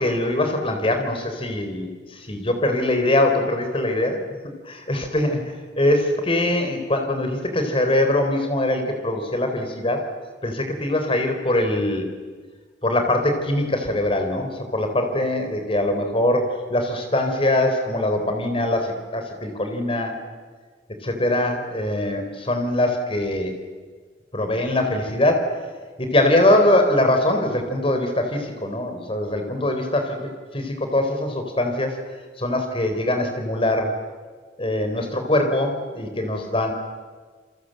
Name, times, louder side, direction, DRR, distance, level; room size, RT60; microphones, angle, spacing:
voice 1, 0.0-4.2 4.6-10.1 10.4-12.1 12.8-20.2 20.9-23.6 24.3-25.7 26.0-32.0 32.4-34.0 34.6-36.7, left 1 dB, 30° left, 5 dB, 3.9 m, -22 dB
28.0 x 23.5 x 7.9 m, 1.5 s
head